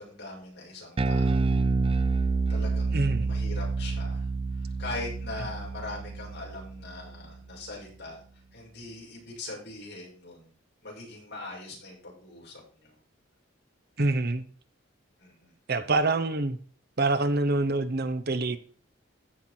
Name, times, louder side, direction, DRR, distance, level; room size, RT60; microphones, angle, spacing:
voice 1, 0.0-1.6 2.5-4.3 4.6-8.2 8.5-10.5 10.8-12.9 15.2-15.5, left 2 dB, 55° left, 6.6 m, -41 dB
Bass guitar, 1.0-7.4, right 3 dB, 30° right, 0.4 m, -28 dB
voice 2, 2.9-3.3 14.0-14.4 15.7-16.6 17.0-18.6, right 2 dB, 55° right, 1.0 m, -26 dB
15.0 x 5.9 x 4.5 m
head